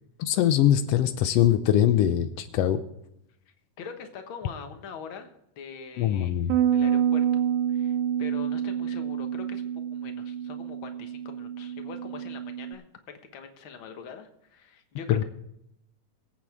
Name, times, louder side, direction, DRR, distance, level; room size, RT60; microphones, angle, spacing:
voice 1, 0.2-2.8 6.0-6.5 15.1-15.2, left 11 dB, 90° left, 9 dB, 1.4 m, -22 dB
voice 2, 3.5-6.4 6.7-7.2 7.7-9.6 9.9-12.8 13.3-15.2, left 6 dB, 55° left, 6 dB, 1.6 m, -43 dB
Bass guitar, 6.5-12.7, right 9 dB, 75° right, 1.9 m, -28 dB
23.5 x 8.7 x 3.6 m, 0.80 s
omnidirectional pair, 3.7 m